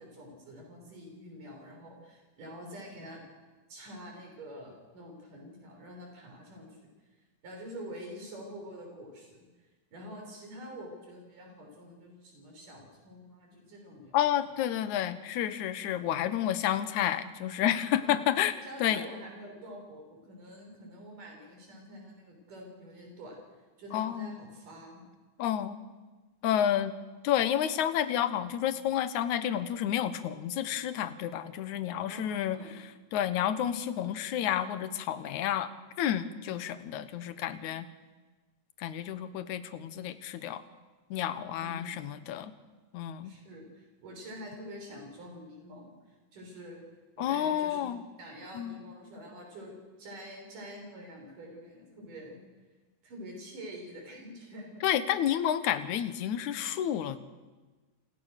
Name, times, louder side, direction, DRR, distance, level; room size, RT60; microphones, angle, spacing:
voice 1, 0.0-3.2 3.7-6.9 7.4-9.5 9.9-14.2 18.0-23.4 23.8-25.0 31.9-32.9 41.6-42.0 43.2-46.8 47.2-49.7 50.0-52.4 53.0-54.9, equal, 85° right, 1 dB, 7.9 m, -46 dB
voice 2, 14.1-18.5 18.8-19.0 23.9-24.4 25.4-25.8 26.4-26.9 27.2-32.6 33.1-35.7 36.0-37.9 38.8-40.6 41.1-42.5 42.9-43.3 47.2-48.0 48.5-48.8 54.8-57.2, left 10 dB, 70° left, 12 dB, 2.5 m, -30 dB
29.0 x 28.5 x 6.7 m, 1.3 s
omnidirectional pair, 3.6 m